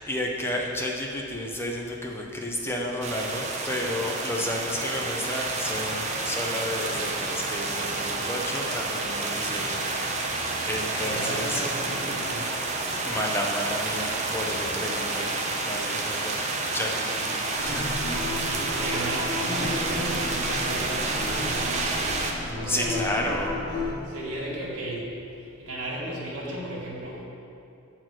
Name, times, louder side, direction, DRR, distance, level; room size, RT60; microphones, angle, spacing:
voice 1, 0.0-10.4 10.6-11.6 13.0-15.3 15.6-16.3 16.7-18.1 22.7-23.6, left 1 dB, 10° left, -1 dB, 0.6 m, -32 dB
sound 1, 3.0-22.3, right 3 dB, 30° right, 0.6 m, -29 dB
voice 2, 11.0-12.5 14.3-14.6 18.4-22.0 22.5-23.0 24.1-25.0 25.6-27.2, right 1 dB, 80° right, -5 dB, 1.8 m, -34 dB
sound 2, 17.6-23.9, left 2 dB, 85° left, 1.6 m, -33 dB
7.6 x 4.3 x 6.1 m, 2.7 s
head